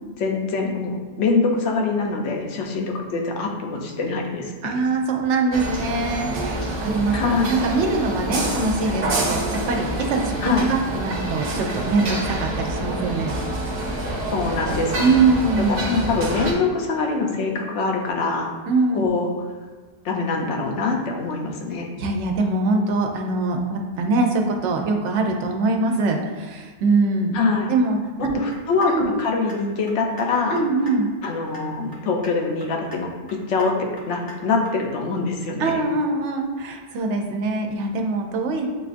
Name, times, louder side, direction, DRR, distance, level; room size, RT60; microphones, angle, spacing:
voice 1, 0.2-4.8 7.1-7.6 10.4-10.7 14.3-15.2 15.7-18.5 18.9-19.3 20.0-21.9 27.3-27.7 28.2-30.6 31.2-33.1 33.5-35.7, left 4 dB, 85° left, 1 dB, 1.0 m, -24 dB
voice 2, 4.6-13.4 15.0-15.9 18.7-19.1 22.0-27.4 27.7-28.4 28.9-29.1 30.5-31.1 35.6-38.7, right 3 dB, 85° right, 3 dB, 0.9 m, -23 dB
sound 1, 5.5-16.5, right 1 dB, 60° right, 0.8 m, -27 dB
sound 2, 28.5-28.9 29.2-29.6 29.9-30.2 30.5-30.9 31.2-31.6 31.9-32.3 32.6-33.0 33.3-33.7 34.0-34.3 34.6-34.7, equal, 25° left, 0.5 m, -42 dB
6.6 x 2.4 x 2.5 m, 1.4 s
omnidirectional pair, 1.2 m